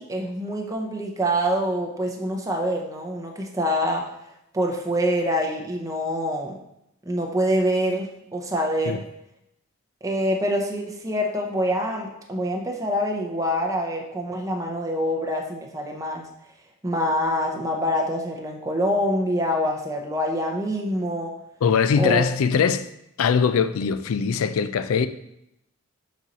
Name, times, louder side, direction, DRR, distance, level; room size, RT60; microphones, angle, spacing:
voice 1, 0.0-4.1 4.5-6.6 7.1-9.0 10.0-16.3 16.8-21.3 22.0-22.3, equal, 15° right, 0.6 m, -25 dB
voice 2, 21.6-22.9 23.2-25.1, left 6 dB, 75° left, 0.4 m, -21 dB
6.2 x 4.2 x 4.0 m
head